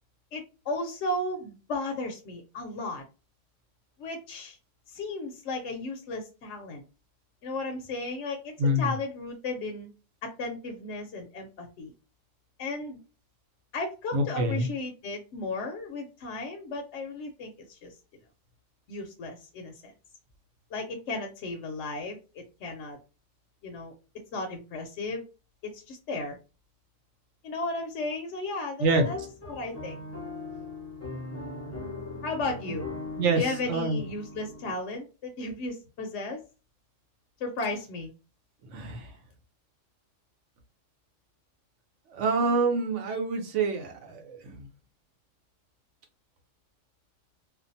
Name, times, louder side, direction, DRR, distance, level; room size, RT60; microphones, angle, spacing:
voice 1, 0.3-3.0 4.0-4.6 4.9-6.8 7.4-9.9 10.2-11.9 12.6-13.0 13.7-17.9 18.9-19.9 20.7-23.0 23.6-23.9 24.3-25.2 25.6-26.4 27.4-29.2 29.5-30.0 32.2-32.9 33.3-36.4 37.4-38.1, left 2 dB, 70° left, 0.8 m, -35 dB
voice 2, 8.6-8.9 14.1-14.7 28.8-29.0 33.2-33.4 33.7-34.0 38.7-39.1 42.1-44.5, right 2 dB, 70° right, 1.0 m, -26 dB
sound 1, 28.8-34.7, left 3 dB, 15° left, 0.5 m, -39 dB
2.5 x 2.2 x 2.5 m
omnidirectional pair, 1.3 m